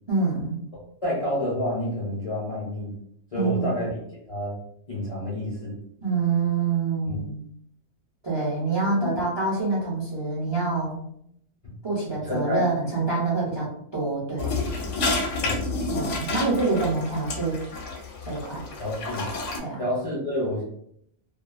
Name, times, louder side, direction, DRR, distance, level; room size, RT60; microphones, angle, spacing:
voice 1, 0.1-0.6 3.3-3.8 6.0-7.4 8.2-11.0 11.8-14.7 15.9-17.6 18.3-18.6 19.6-19.8, right 3 dB, 35° right, -6 dB, 0.4 m, -26 dB
voice 2, 0.7-2.9 3.3-4.0 4.3-4.6 4.9-5.8 7.1-7.2 9.0-9.1 11.6-11.7 12.2-12.8 15.4-15.7 18.8-19.3 19.8-20.6, left 1 dB, 40° left, -6 dB, 0.5 m, -29 dB
sound 1, 14.4-19.6, left 3 dB, 75° left, 0.9 m, -30 dB
2.3 x 2.3 x 2.4 m, 0.70 s
omnidirectional pair, 1.3 m